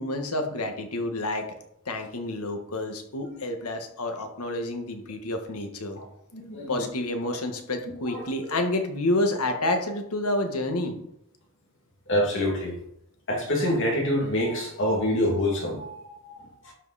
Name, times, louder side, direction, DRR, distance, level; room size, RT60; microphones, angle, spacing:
voice 1, 0.0-1.5 1.9-6.0 6.7-10.9, left 1 dB, 85° left, 1.5 m, -29 dB
voice 2, 6.3-6.9 8.1-8.3 12.1-12.8 13.3-16.7, left 1 dB, 60° left, 2.4 m, -26 dB
12.0 x 5.5 x 4.2 m
head